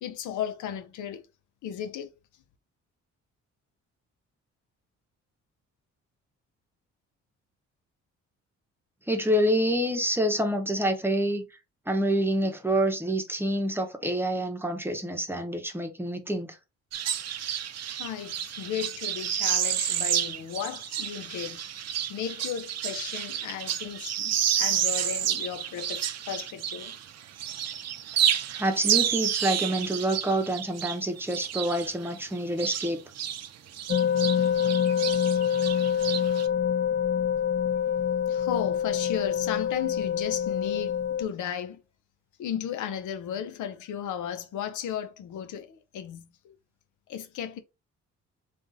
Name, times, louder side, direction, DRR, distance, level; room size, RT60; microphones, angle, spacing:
voice 1, 0.0-1.2 1.6-2.1 17.9-21.7 22.1-27.0 38.3-41.8 42.4-46.5 47.1-47.6, left 9 dB, 80° left, 0.8 m, -35 dB
voice 2, 9.1-11.4 11.9-16.6 28.6-33.0, right 1 dB, 5° right, 1.0 m, -27 dB
sound 1, 16.9-27.1 27.4-33.5 33.7-36.5, right 10 dB, 60° right, 0.6 m, -30 dB
sound 2, 33.9-41.2, left 9 dB, 40° left, 0.6 m, -26 dB
3.5 x 2.5 x 4.0 m
cardioid pair, 90°, 30 cm